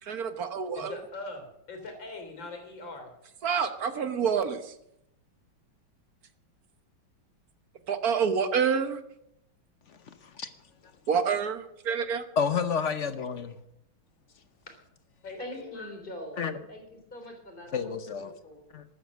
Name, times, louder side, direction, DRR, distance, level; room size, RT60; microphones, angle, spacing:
voice 1, 0.0-1.0 3.4-4.7 7.9-9.0 11.1-12.3, right 6 dB, 55° right, 10 dB, 1.5 m, -28 dB
voice 2, 0.8-3.1 15.2-15.9, left 3 dB, 65° left, 4 dB, 4.1 m, -41 dB
voice 3, 12.4-13.6 16.4-16.6 17.7-18.3 18.7-18.8, left 6 dB, 50° left, 11 dB, 0.9 m, -29 dB
voice 4, 15.4-18.6, equal, 25° left, 3 dB, 3.6 m, -44 dB
14.0 x 11.5 x 6.3 m, 0.78 s
omnidirectional pair, 2.2 m